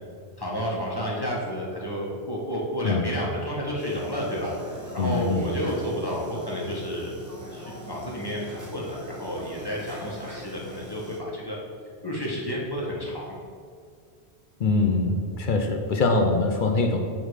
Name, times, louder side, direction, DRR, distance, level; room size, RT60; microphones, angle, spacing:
voice 1, 0.4-7.1 7.5-11.6 12.0-13.3, equal, 20° left, -4 dB, 1.2 m, -31 dB
sound 1, 3.8-11.2, equal, 20° right, 0.9 m, -41 dB
voice 2, 5.0-5.5 14.6-17.0, left 3 dB, 55° left, 4 dB, 0.7 m, -23 dB
8.4 x 3.7 x 4.7 m, 2.1 s
omnidirectional pair, 1.1 m